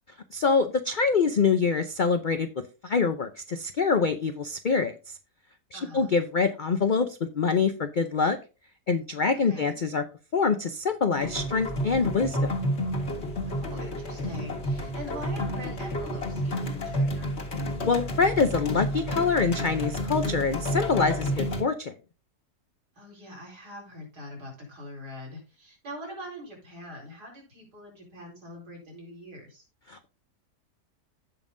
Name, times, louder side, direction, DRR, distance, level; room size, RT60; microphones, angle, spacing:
voice 1, 0.3-2.5 2.8-5.0 5.7-7.1 7.3-8.4 8.9-10.0 10.3-12.5 17.8-21.9 29.9-30.1, left 5 dB, 65° left, 9 dB, 0.4 m, -25 dB
voice 2, 5.7-6.1 9.4-9.7 13.5-17.4 23.0-29.6, left 1 dB, 80° right, -1 dB, 4.9 m, -43 dB
sound 1, 11.2-21.6, equal, 40° left, 1.8 m, -30 dB
16.0 x 5.4 x 2.6 m, 0.32 s
omnidirectional pair, 1.7 m